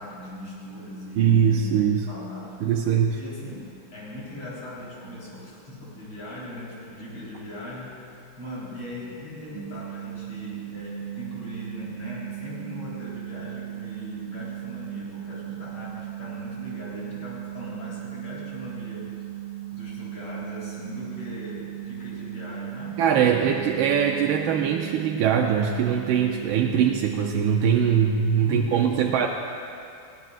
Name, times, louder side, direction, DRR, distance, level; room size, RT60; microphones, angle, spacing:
voice 1, 0.0-2.6 3.2-7.9 8.4-19.1 19.7-23.5 26.7-26.8 28.4-29.2, left 1 dB, 80° left, -7 dB, 4.6 m, -39 dB
voice 2, 1.2-2.0 2.6-3.2 23.0-29.3, right 8 dB, 85° right, 1 dB, 1.5 m, -22 dB
sound 1, 9.5-28.2, right 15 dB, 60° right, 2.7 m, -37 dB
19.0 x 16.5 x 2.5 m, 2.5 s
omnidirectional pair, 2.2 m